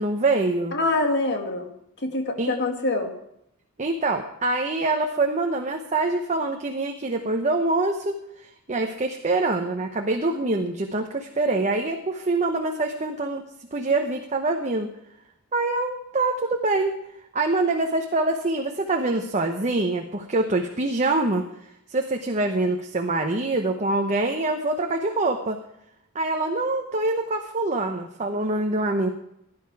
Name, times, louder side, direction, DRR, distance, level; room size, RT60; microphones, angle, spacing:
voice 1, 0.0-0.7 2.4-2.5 3.8-13.4 13.7-14.9 15.5-17.0 17.3-21.4 21.9-25.6 26.1-29.1, right 2 dB, 35° right, 3 dB, 1.0 m, -25 dB
voice 2, 0.7-1.7 2.0-3.1, left 2 dB, 55° left, 4 dB, 2.0 m, -25 dB
16.5 x 10.5 x 4.8 m, 0.78 s
head